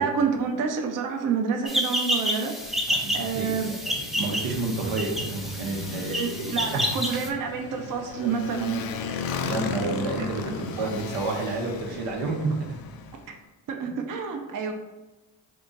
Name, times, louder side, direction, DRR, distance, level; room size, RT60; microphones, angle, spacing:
voice 1, 0.0-2.5 3.1-3.7 6.1-8.8 10.2-10.3 10.8-11.0 13.7-14.7, right 6 dB, 45° right, 3 dB, 0.6 m, -28 dB
sound 1, 1.7-7.3, equal, ahead, 0.5 m, -29 dB
Motorcycle, 2.6-13.3, left 6 dB, 55° left, 0.5 m, -37 dB
voice 2, 2.9-6.1 6.6-6.9 9.4-12.6 13.8-13.9, right 3 dB, 85° right, 0 dB, 0.8 m, -30 dB
2.8 x 2.5 x 3.7 m, 1.1 s
supercardioid pair, 65°, 46 cm